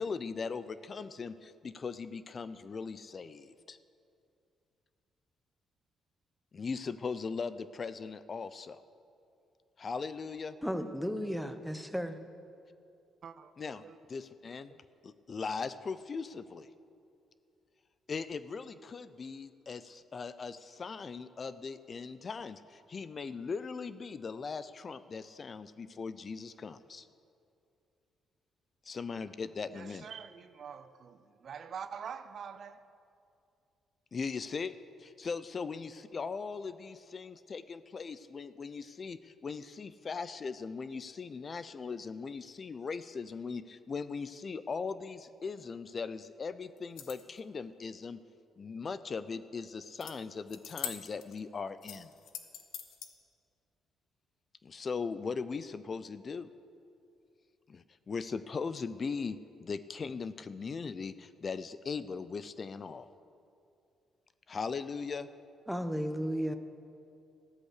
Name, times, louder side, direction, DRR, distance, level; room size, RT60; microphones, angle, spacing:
voice 1, 0.0-3.8 6.5-8.8 9.8-10.6 13.6-13.8 14.1-14.7 15.0-16.7 18.1-27.1 28.8-30.1 34.1-48.2 48.6-52.1 54.6-56.5 57.7-63.1 64.5-65.3, left 5 dB, 40° left, 0.6 m, -39 dB
voice 2, 10.6-12.2 65.7-66.6, equal, ahead, 1.1 m, -34 dB
voice 3, 13.2-14.0 14.7-14.8 29.7-30.8 31.4-32.8, right 7 dB, 55° right, 0.7 m, -45 dB
sound 1, 46.8-47.4 50.0-50.1 50.5-51.4 51.8-53.1, left 9 dB, 85° left, 1.2 m, -43 dB
15.0 x 13.0 x 6.6 m
cardioid pair, 90°, 0 cm